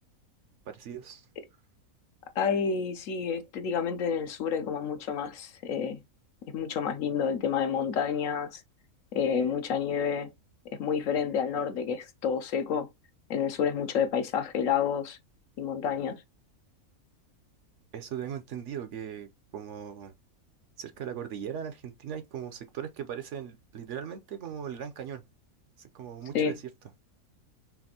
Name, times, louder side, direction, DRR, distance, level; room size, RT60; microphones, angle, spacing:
voice 1, 0.7-1.3 17.9-20.1 20.8-25.2 25.8-26.6, right 8 dB, 65° right, 0.9 m, -39 dB
voice 2, 2.4-6.0 6.5-8.6 9.1-10.3 10.8-12.9 13.3-15.2 15.6-16.2 26.3-26.5, left 7 dB, 70° left, 1.0 m, -29 dB
5.8 x 2.5 x 2.8 m
omnidirectional pair, 1.5 m